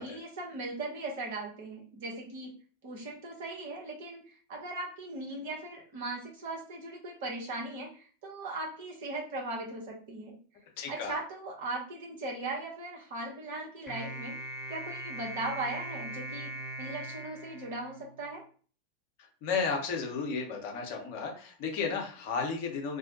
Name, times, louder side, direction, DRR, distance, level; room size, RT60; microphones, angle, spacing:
voice 1, 0.0-2.5 2.8-4.2 4.5-10.4 10.9-14.3 14.7-16.5 16.8-18.4, right 2 dB, 50° right, -1 dB, 0.9 m, -38 dB
voice 2, 10.8-11.2 19.4-23.0, left 5 dB, 45° left, 1 dB, 0.7 m, -33 dB
sound 1, 13.9-18.4, right 1 dB, ahead, 0.9 m, -41 dB
2.5 x 2.1 x 2.7 m, 0.41 s
figure-of-eight pair, 90°, 0 cm